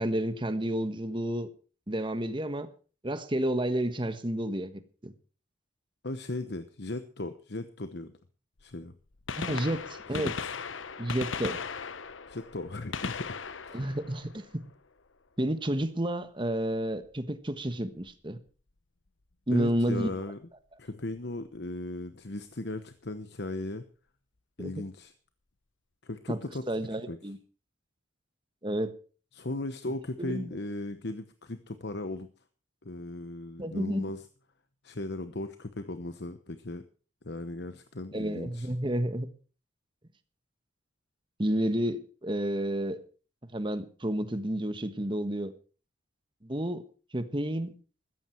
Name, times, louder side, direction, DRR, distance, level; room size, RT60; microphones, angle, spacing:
voice 1, 0.0-1.5 1.9-2.7 3.0-4.7 5.0-5.1 9.4-9.8 10.1-10.3 11.0-11.7 13.7-14.5 15.4-18.4 19.5-20.1 24.6-24.7 26.3-26.4 26.7-27.4 28.6-28.9 30.2-30.5 33.6-34.0 38.1-39.3 41.4-43.0 43.5-45.5 46.4-46.8 47.1-47.7, right 1 dB, 25° right, 1.3 m, -30 dB
voice 2, 6.0-8.1 8.6-8.9 9.4-9.6 10.1-10.5 12.3-13.4 13.6-13.8 19.5-20.4 20.8-23.8 24.6-25.1 26.0-26.6 27.1-27.2 29.3-32.3 32.8-34.3 34.8-36.8 37.2-38.7, left 2 dB, 60° left, 1.0 m, -37 dB
Gunshot gunfire, 8.6-8.7 9.1-15.0 16.9-17.1 18.1-18.2 19.8-19.9 21.3-21.4 21.5-21.6, left 5 dB, 80° left, 0.9 m, -38 dB
15.5 x 14.0 x 4.6 m
head